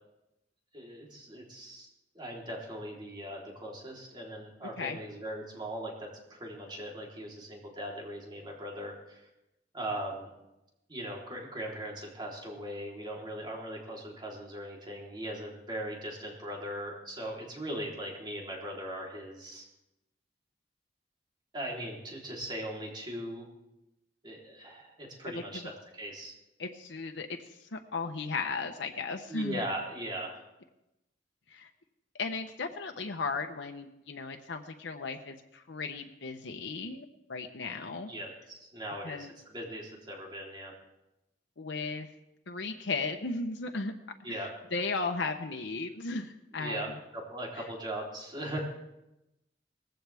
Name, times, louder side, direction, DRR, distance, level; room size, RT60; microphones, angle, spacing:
voice 1, 0.7-1.9 2.2-5.9 6.3-9.3 9.7-10.3 10.9-19.7 21.5-23.5 24.2-26.3 29.3-30.4 38.0-40.7 44.2-44.5 46.5-46.9 47.3-48.6, right 1 dB, 25° right, -2 dB, 3.6 m, -39 dB
voice 2, 26.6-29.6 31.5-31.7 32.2-38.1 39.0-39.3 41.6-42.1 42.5-43.9 44.3-44.4 44.7-47.0, left 4 dB, 90° left, 4 dB, 0.9 m, -36 dB
19.0 x 15.5 x 3.5 m, 0.93 s
head